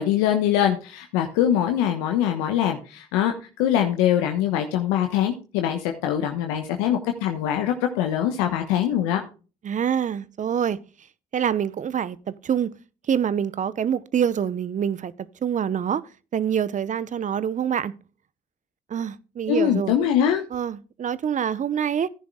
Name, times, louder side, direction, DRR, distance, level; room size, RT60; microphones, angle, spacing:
voice 1, 0.0-9.2 19.5-20.4, left 10 dB, 85° left, 1.1 m, -23 dB
voice 2, 9.6-10.8 11.3-12.7 13.1-16.0 16.3-17.9 18.9-20.0 20.5-22.1, right 8 dB, 50° right, 0.9 m, -26 dB
15.0 x 10.5 x 2.3 m
hypercardioid pair, 50°, 17 cm